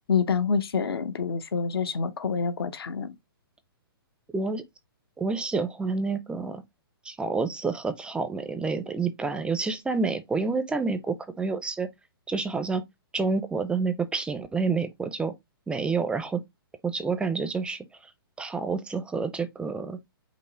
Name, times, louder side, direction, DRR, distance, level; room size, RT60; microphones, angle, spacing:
voice 1, 0.1-3.1, left 5 dB, 75° left, 0.8 m, -27 dB
voice 2, 4.3-4.6 5.2-6.6 7.0-11.9 12.3-12.8 13.1-15.3 15.7-16.4 16.8-17.8 18.4-20.0, right 4 dB, 10° right, 0.4 m, -28 dB
5.4 x 2.0 x 4.3 m
hypercardioid pair, 135°, 13 cm